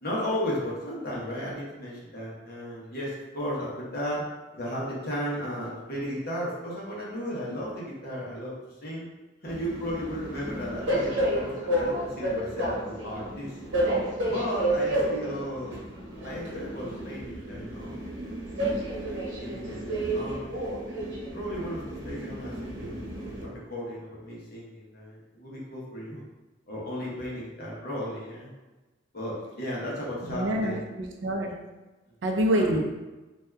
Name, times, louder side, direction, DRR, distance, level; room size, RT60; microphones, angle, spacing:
voice 1, 0.0-4.2 4.5-8.5 8.8-9.1 9.4-13.6 14.3-15.7 16.2-18.0 18.5-18.8 19.4-20.6 21.3-26.2 26.7-28.5 29.1-30.8, equal, 50° left, -5 dB, 0.9 m, -35 dB
Train, 9.5-23.4, right 1 dB, 90° right, 1.0 m, -31 dB
voice 2, 30.2-31.6 32.2-32.9, right 1 dB, 70° right, 2 dB, 0.4 m, -26 dB
2.6 x 2.3 x 3.3 m, 1.1 s
head